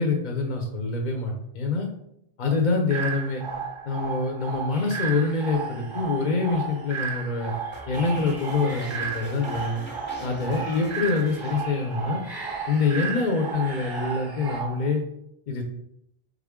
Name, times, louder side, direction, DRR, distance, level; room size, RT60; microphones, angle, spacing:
voice 1, 0.0-1.9 2.4-3.4 3.9-7.5 7.9-9.8 10.2-12.2 12.7-15.0 15.5-15.6, left 4 dB, 50° left, 2 dB, 0.7 m, -25 dB
sound 1, 2.9-14.9, right 6 dB, 50° right, 0.3 m, -34 dB
sound 2, 4.7-14.6, right 2 dB, 25° right, 0.9 m, -44 dB
sound 3, 7.7-12.2 12.4-12.9, equal, 10° left, 0.7 m, -42 dB
3.8 x 3.6 x 3.6 m, 0.77 s
omnidirectional pair, 1.1 m